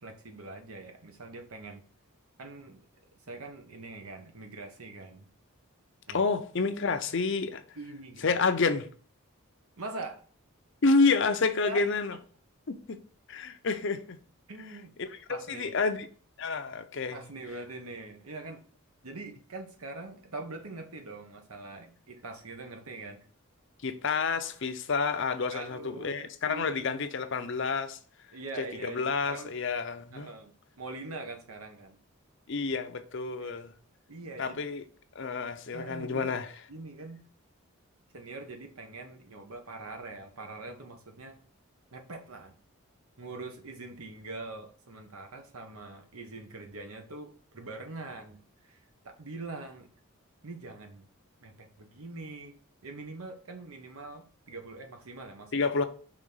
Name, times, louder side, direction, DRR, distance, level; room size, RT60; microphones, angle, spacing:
voice 1, 0.0-1.8 2.4-2.8 3.3-5.3 6.1-6.3 7.7-8.4 9.8-10.2 11.6-11.8 14.5-14.9 15.3-15.8 17.1-18.6 19.0-23.3 25.5-27.0 28.3-29.6 30.1-30.5 30.8-32.0 33.4-33.6 34.1-34.6 35.7-36.4 36.7-37.2 38.1-41.4 41.9-42.6 43.2-49.9 50.4-51.1 51.4-52.5 52.8-55.7, right 2 dB, 80° right, 1.1 m, -43 dB
voice 2, 6.1-7.6 8.2-8.9 10.8-12.2 12.9-13.0 13.3-14.2 15.0-16.1 16.4-17.2 23.8-28.0 28.6-30.3 32.5-33.7 34.4-34.8 35.1-36.5 55.5-55.8, left 4 dB, 55° left, 0.6 m, -29 dB
5.0 x 3.6 x 5.5 m
head